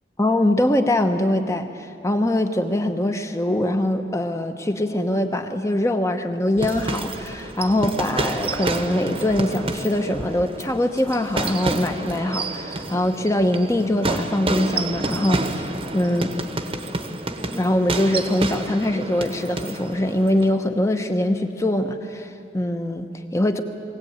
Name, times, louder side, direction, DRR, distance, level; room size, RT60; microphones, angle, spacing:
voice 1, 0.2-16.4 17.5-23.6, left 1 dB, 15° left, 6 dB, 1.0 m, -23 dB
sound 1, 6.6-20.5, right 2 dB, 30° right, 1.1 m, -29 dB
21.5 x 17.0 x 8.9 m, 2.6 s
head